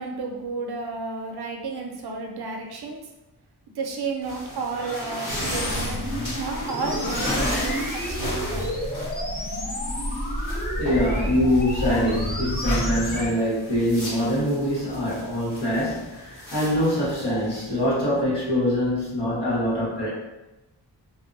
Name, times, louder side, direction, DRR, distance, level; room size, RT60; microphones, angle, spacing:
voice 1, 0.0-3.0 3.8-6.0 6.4-8.7, right 4 dB, 65° right, 1 dB, 0.5 m, -32 dB
sound 1, 4.2-17.9, left 1 dB, 45° left, 1.2 m, -35 dB
sound 2, 5.3-13.3, equal, 25° left, 0.4 m, -29 dB
voice 2, 10.8-20.1, left 1 dB, 75° left, -9 dB, 1.4 m, -24 dB
2.6 x 2.2 x 2.5 m, 0.99 s
wide cardioid pair, 90°, 41 cm